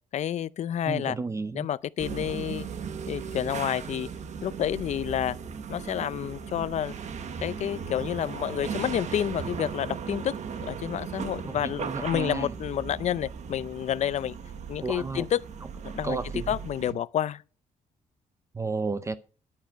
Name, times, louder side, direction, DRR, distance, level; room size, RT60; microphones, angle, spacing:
voice 1, 0.1-1.2 1.5-2.7 3.1-4.1 4.4-5.4 5.7-7.0 7.4-10.3 10.6-14.4 14.7-15.4 15.8-16.2 16.5-17.4, left 10 dB, 55° left, 0.5 m, -29 dB
voice 2, 0.9-1.7 8.9-9.0 11.5-12.5 14.8-15.2 16.0-16.5 18.5-19.2, right 4 dB, 20° right, 0.6 m, -32 dB
sound 1, 2.0-16.9, right 6 dB, 55° right, 1.2 m, -37 dB
10.5 x 8.8 x 5.1 m
cardioid pair, 120°, 14 cm